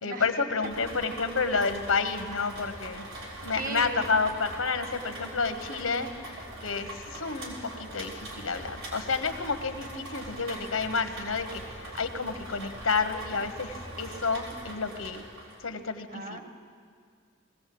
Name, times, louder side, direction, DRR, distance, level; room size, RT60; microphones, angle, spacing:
voice 1, 0.0-3.1 3.4-6.1 6.6-15.2 15.6-16.4, left 4 dB, 90° left, 8 dB, 1.3 m, -30 dB
Rain, 0.6-15.6, right 1 dB, 85° right, 4.4 m, -42 dB
voice 2, 3.6-4.1 16.1-16.4, right 2 dB, 40° right, 6 dB, 1.5 m, -36 dB
20.5 x 17.0 x 7.8 m, 2.1 s
head